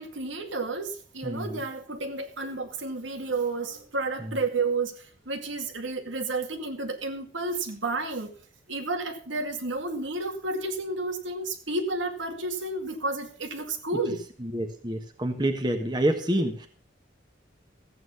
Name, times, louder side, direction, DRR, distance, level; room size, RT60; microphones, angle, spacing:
voice 1, 0.0-8.3 8.7-14.2, right 3 dB, 80° right, 5 dB, 2.2 m, -31 dB
voice 2, 1.2-1.6 14.4-16.7, right 1 dB, 20° right, 4 dB, 1.3 m, -27 dB
14.5 x 9.0 x 5.7 m, 0.43 s
head